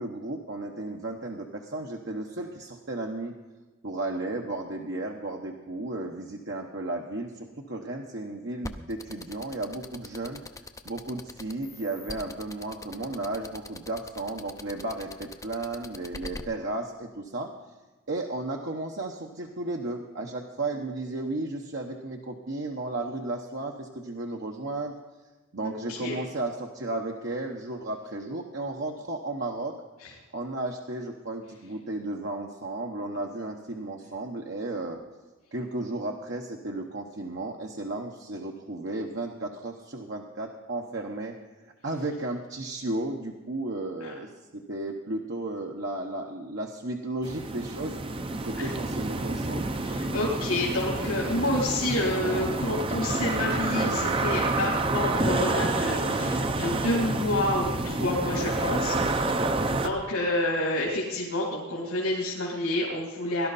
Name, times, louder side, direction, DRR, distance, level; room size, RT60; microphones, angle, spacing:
voice 1, 0.0-3.3 3.8-10.4 10.8-17.5 18.1-25.0 25.5-29.7 30.3-35.0 35.5-41.3 41.8-48.0 48.4-49.6, right 2 dB, 55° right, 1 dB, 1.0 m, -34 dB
sound 1, 8.6-16.4, left 3 dB, 15° left, 0.6 m, -40 dB
voice 2, 25.6-26.2 30.0-30.1 44.0-44.1 48.6-48.7 49.8-59.3 59.8-63.5, left 1 dB, 85° left, -4 dB, 3.0 m, -29 dB
sound 2, 47.2-59.9, right 2 dB, 25° right, 0.6 m, -28 dB
18.0 x 12.0 x 4.1 m, 1.2 s
head